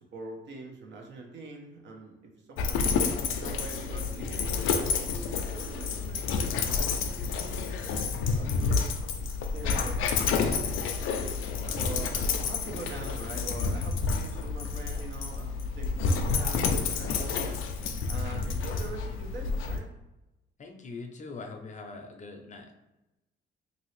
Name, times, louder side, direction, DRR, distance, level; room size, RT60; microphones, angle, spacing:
voice 1, 0.1-2.9 3.3-8.9 9.2-11.3 11.8-12.1 12.4-17.6 18.1-19.9, right 2 dB, 65° right, 1 dB, 0.8 m, -44 dB
Dog, 2.6-19.8, left 5 dB, 90° left, 0.4 m, -29 dB
voice 2, 11.5-11.8 20.6-22.7, left 3 dB, 40° left, 4 dB, 0.5 m, -43 dB
2.8 x 2.6 x 3.1 m, 0.96 s
cardioid pair, 90°, 20 cm